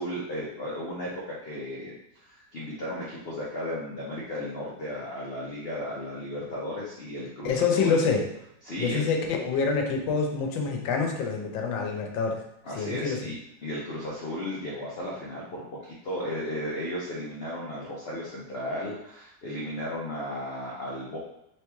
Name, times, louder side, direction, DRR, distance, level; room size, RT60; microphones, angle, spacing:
voice 1, 0.0-8.0 8.6-9.0 12.6-13.4 13.6-21.2, left 1 dB, 55° left, -5 dB, 0.7 m, -35 dB
voice 2, 7.4-8.3 8.8-12.4 12.7-13.3, left 5 dB, 80° left, 2 dB, 1.4 m, -26 dB
4.0 x 3.1 x 3.4 m, 0.80 s
omnidirectional pair, 2.0 m